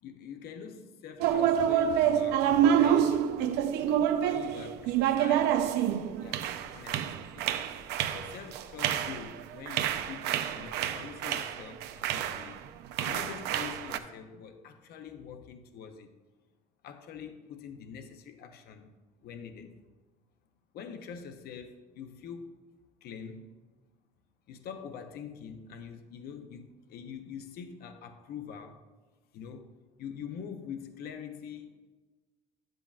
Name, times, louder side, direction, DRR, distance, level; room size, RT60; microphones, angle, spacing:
voice 1, 0.0-3.3 4.2-5.7 6.2-7.5 8.1-12.6 13.0-16.1 16.8-18.9 19.2-19.7 20.7-23.5 24.5-28.8 29.3-29.7 30.0-31.8, left 7 dB, 70° left, 7 dB, 0.7 m, -44 dB
sound 1, 1.2-12.6 12.9-14.0, right 9 dB, 90° right, 0.5 m, -28 dB
10.0 x 7.7 x 2.4 m, 1.3 s
cardioid pair, 110°, 17 cm